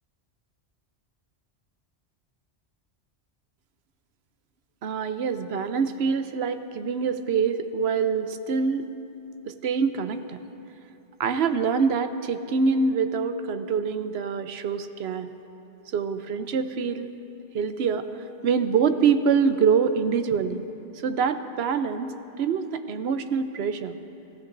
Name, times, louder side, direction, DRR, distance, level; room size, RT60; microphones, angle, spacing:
voice 1, 4.8-8.8 9.4-10.4 11.2-15.3 15.9-17.1 17.5-18.1 18.4-20.6 21.0-24.0, right 5 dB, 70° right, 10 dB, 0.9 m, -25 dB
25.5 x 14.0 x 2.6 m, 2.9 s
omnidirectional pair, 1.1 m